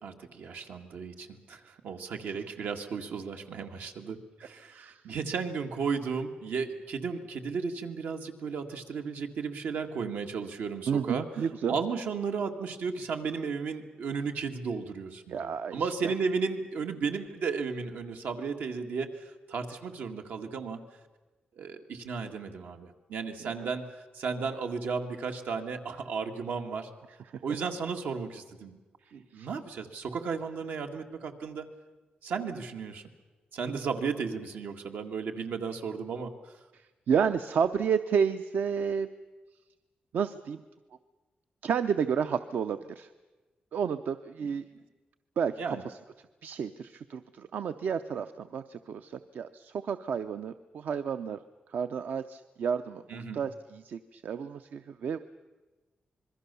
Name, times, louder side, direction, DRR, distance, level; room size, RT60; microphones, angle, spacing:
voice 1, 0.0-11.3 11.7-20.8 21.6-23.8 24.1-26.9 27.4-28.8 29.1-31.7 32.2-33.0 33.5-36.5 44.4-44.8 45.6-45.8 53.1-53.4, right 5 dB, 90° right, 4 dB, 2.0 m, -34 dB
voice 2, 10.9-11.8 15.3-16.1 23.4-23.5 27.3-27.4 29.3-29.5 36.7-39.1 40.1-40.6 41.6-43.1 43.7-44.6 45.4-46.0 46.4-51.4 51.7-55.2, right 7 dB, 70° right, 10 dB, 0.7 m, -31 dB
26.5 x 21.5 x 6.9 m, 1.2 s
wide cardioid pair, 155°, 3 cm